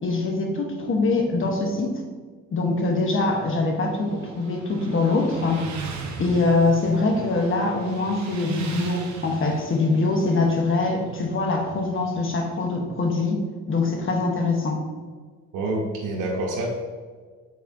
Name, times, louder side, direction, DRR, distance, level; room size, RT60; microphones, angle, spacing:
voice 1, 0.0-2.0 2.5-5.7 6.2-14.9, left 3 dB, 45° left, 2 dB, 1.2 m, -23 dB
Motorcycle, 2.8-12.6, right 4 dB, 70° right, 0.9 m, -37 dB
voice 2, 15.5-16.7, right 2 dB, 90° right, -3 dB, 1.1 m, -27 dB
8.5 x 4.0 x 2.8 m, 1.5 s
cardioid pair, 90°, 30 cm